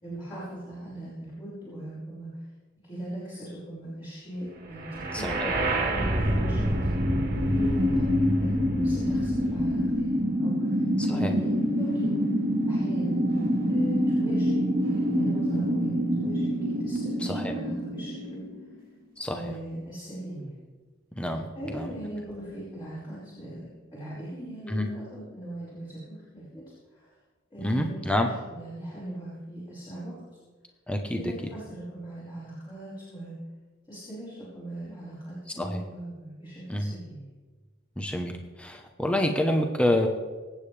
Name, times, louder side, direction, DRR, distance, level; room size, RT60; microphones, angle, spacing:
voice 1, 0.0-2.4 2.8-5.3 5.9-6.7 7.4-11.5 11.8-12.2 12.7-13.2 13.7-18.4 19.3-20.6 21.5-26.6 26.9-27.1 27.5-30.1 31.1-33.3 33.9-37.3, right 1 dB, 25° left, -10 dB, 5.1 m, -39 dB
sound 1, 4.9-18.8, equal, 45° right, 1.7 m, -26 dB
voice 2, 5.1-5.5 11.0-11.3 17.2-17.5 19.2-19.4 21.2-21.5 21.7-21.9 24.7-24.9 27.6-28.3 30.9-31.2 35.6-35.8 36.7-36.8 38.0-38.3 38.6-40.1, left 1 dB, 5° left, 3 dB, 0.9 m, -27 dB
25.5 x 8.7 x 3.4 m, 1.3 s
head